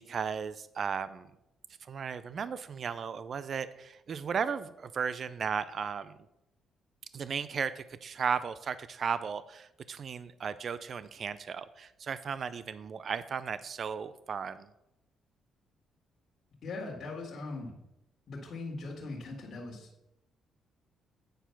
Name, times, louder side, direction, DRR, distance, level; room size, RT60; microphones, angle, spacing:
voice 1, 0.1-1.3 1.9-6.2 7.1-14.7, right 6 dB, 50° right, 15 dB, 0.4 m, -35 dB
voice 2, 16.6-17.7 18.3-20.1, left 3 dB, 50° left, -3 dB, 2.0 m, -40 dB
9.1 x 4.6 x 5.8 m, 0.87 s
cardioid pair, 90°, 0 cm